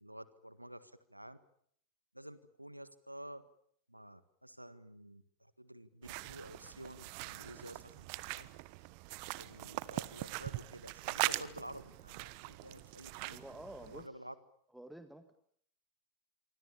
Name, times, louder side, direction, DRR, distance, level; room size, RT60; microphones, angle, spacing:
voice 1, 0.0-1.4 2.1-3.4 3.9-8.1 8.3-8.5 9.4-13.4 13.9-14.4, right 1 dB, 90° right, 14 dB, 1.7 m, -51 dB
sound 1, 6.0-14.0, right 21 dB, 45° right, 1.2 m, -41 dB
voice 2, 13.3-14.1 14.7-15.3, right 1 dB, 5° right, 8 dB, 1.9 m, -50 dB
27.5 x 24.5 x 7.1 m, 0.66 s
figure-of-eight pair, 90°, 0 cm